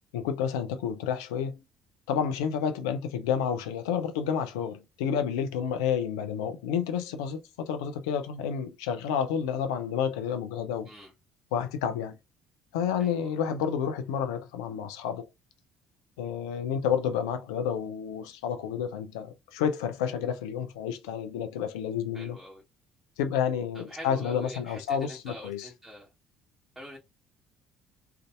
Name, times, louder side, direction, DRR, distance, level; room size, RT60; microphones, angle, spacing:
voice 1, 0.1-1.6 2.1-10.9 11.5-12.2 12.7-15.3 16.2-22.4 23.2-25.7, left 8 dB, 70° left, 0.4 m, -30 dB
voice 2, 22.1-22.6 23.7-26.1 26.7-27.0, equal, 15° right, 1.3 m, -45 dB
3.3 x 2.6 x 2.3 m
figure-of-eight pair, 50°, 3 cm